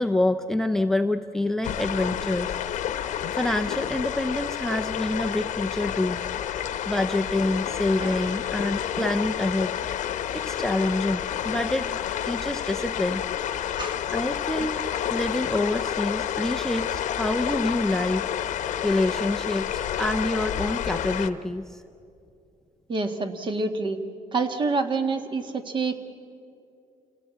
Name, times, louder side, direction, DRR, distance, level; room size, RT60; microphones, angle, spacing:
voice 1, 0.0-2.6 3.1-6.2 6.5-9.7 10.3-11.9 12.2-13.2 14.1-18.3 18.8-21.8, left 2 dB, 5° left, 10 dB, 0.6 m, -27 dB
sound 1, 1.6-21.3, left 10 dB, 65° left, 1.0 m, -29 dB
voice 2, 8.0-8.4 11.8-11.9 13.8-14.0 22.9-24.0 24.3-26.0, right 3 dB, 35° right, 7 dB, 1.7 m, -27 dB
28.0 x 17.5 x 8.4 m, 2.6 s
cardioid pair, 130°, 14 cm